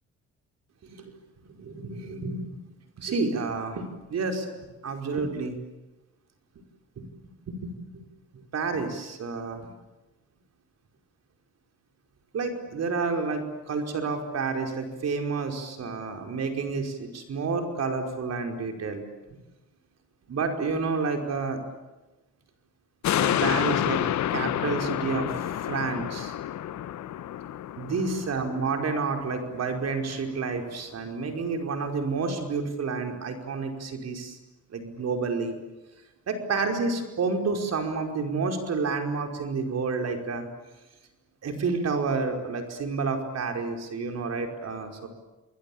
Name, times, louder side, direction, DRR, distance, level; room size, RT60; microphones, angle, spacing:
voice 1, 1.5-2.5 3.0-4.5 4.8-5.6 7.0-7.1 7.5-8.0 8.5-9.7 12.3-19.0 20.3-21.6 23.1-24.0 24.3-25.3 25.7-26.3 27.8-34.4 34.7-35.6 36.3-40.5 41.4-45.1, right 4 dB, 55° right, 4 dB, 5.2 m, -30 dB
sound 1, 23.0-29.7 30.1-30.2, left 11 dB, 65° left, 1.1 m, -29 dB
29.0 x 21.5 x 8.8 m, 1.1 s
cardioid pair, 90°, 30 cm